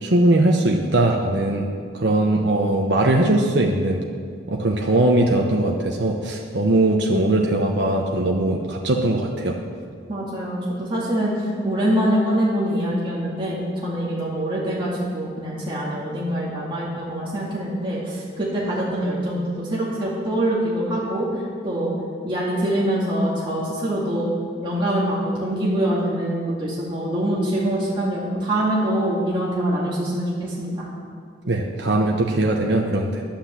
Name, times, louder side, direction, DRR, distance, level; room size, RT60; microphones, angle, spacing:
voice 1, 0.0-1.7 1.9-4.0 4.5-9.6 31.5-33.2, right 1 dB, 65° right, 0 dB, 1.0 m, -20 dB
voice 2, 10.1-21.9 22.2-24.3 24.6-30.9, right 1 dB, 25° right, -7 dB, 2.1 m, -24 dB
10.0 x 8.8 x 7.4 m, 2.1 s
head